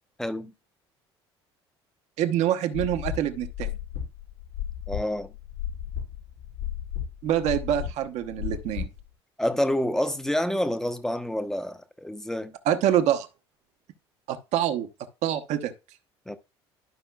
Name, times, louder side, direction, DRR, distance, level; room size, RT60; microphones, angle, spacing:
voice 1, 0.2-0.5 4.9-5.3 9.4-12.5 16.3-16.4, left 1 dB, 5° left, 0.8 m, -28 dB
voice 2, 2.2-3.7 7.2-8.9 12.7-13.3 14.3-14.9 15.2-15.7, right 11 dB, 55° right, 0.9 m, -25 dB
sound 1, 2.7-9.0, left 10 dB, 85° left, 4.3 m, -34 dB
12.0 x 5.3 x 2.3 m
figure-of-eight pair, 60°, 14 cm